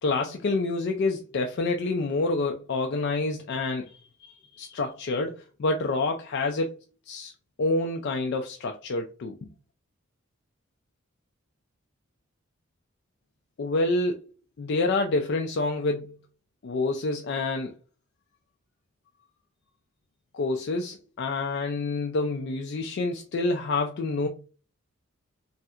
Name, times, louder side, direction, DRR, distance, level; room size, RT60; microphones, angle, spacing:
voice 1, 0.0-3.9 4.2-6.8 7.1-7.3 7.6-9.5 13.6-14.2 14.6-16.1 16.6-17.7 20.3-24.3, left 3 dB, 55° left, 0.3 m, -27 dB
3.2 x 2.7 x 2.4 m
head